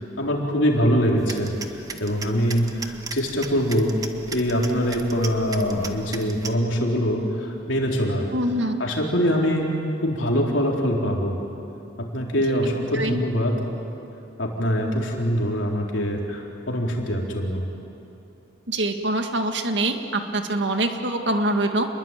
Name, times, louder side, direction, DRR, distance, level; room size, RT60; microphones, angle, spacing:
voice 1, 0.0-4.0 4.3-8.3 8.8-9.7 10.0-11.4 12.0-13.6 14.4-17.7, equal, 75° left, -1 dB, 4.2 m, -23 dB
sound 1, 1.2-6.5, right 4 dB, 20° right, 1.2 m, -38 dB
voice 2, 8.3-8.8 12.5-12.6 12.9-13.2 18.7-21.9, right 1 dB, 65° right, 5 dB, 1.9 m, -24 dB
28.5 x 21.5 x 9.2 m, 2.8 s
head